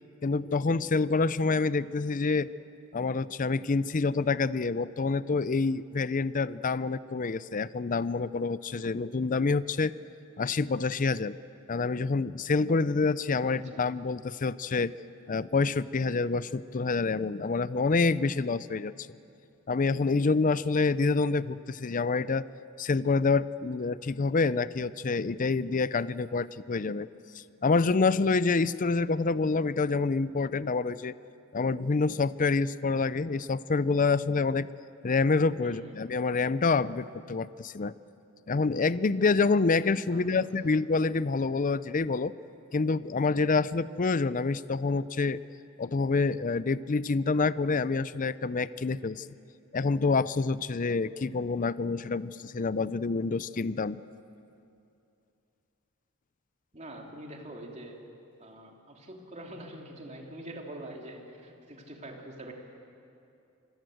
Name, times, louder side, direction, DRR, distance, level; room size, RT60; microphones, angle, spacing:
voice 1, 0.2-2.5 2.9-9.9 10.4-11.4 11.7-14.9 15.3-18.9 19.7-22.4 22.8-27.1 27.3-31.1 31.5-34.7 35.0-37.9 38.5-42.3 42.7-45.4 45.8-49.3 49.7-54.0, left 4 dB, 35° left, 16 dB, 0.5 m, -27 dB
voice 2, 13.4-13.9 35.6-35.9 40.1-40.5 56.7-58.0 58.4-62.5, right 1 dB, 30° right, 1 dB, 3.0 m, -44 dB
26.5 x 23.0 x 7.8 m, 2.7 s
head